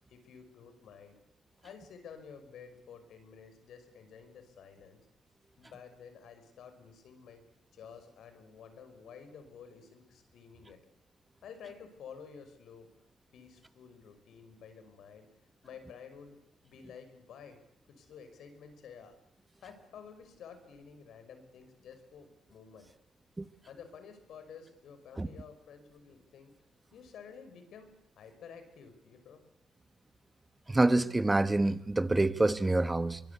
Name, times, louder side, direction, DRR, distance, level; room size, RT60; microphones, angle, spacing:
voice 1, 0.1-1.1 1.6-5.0 5.6-7.4 7.7-10.8 11.4-12.9 13.3-15.3 15.6-16.4 16.6-17.6 18.0-19.2 19.6-22.9 23.7-26.5 26.9-29.4, left 6 dB, 70° left, 5.4 m, -51 dB
voice 2, 30.7-33.2, right 2 dB, 15° right, 1.3 m, -26 dB
23.5 x 22.5 x 8.2 m
cardioid pair, 90°, 0 cm